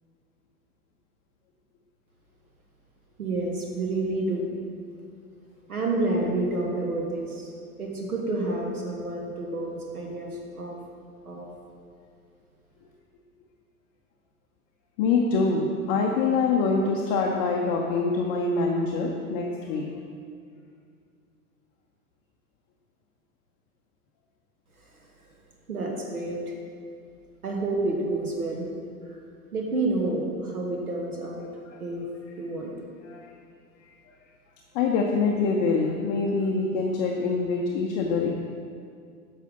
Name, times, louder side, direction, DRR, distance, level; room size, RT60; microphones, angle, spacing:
voice 1, 3.2-4.5 5.7-10.8 11.2-11.5 25.7-26.4 27.4-28.7 29.1-29.2 29.5-31.4 31.8-32.0 32.4-32.7, right 2 dB, 75° right, 0 dB, 1.4 m, -29 dB
voice 2, 15.0-19.9 31.7-31.8 33.0-33.3 34.7-38.3, left 4 dB, 25° left, 0 dB, 0.6 m, -25 dB
9.1 x 5.6 x 5.3 m, 2.3 s
figure-of-eight pair, 95°, 45 cm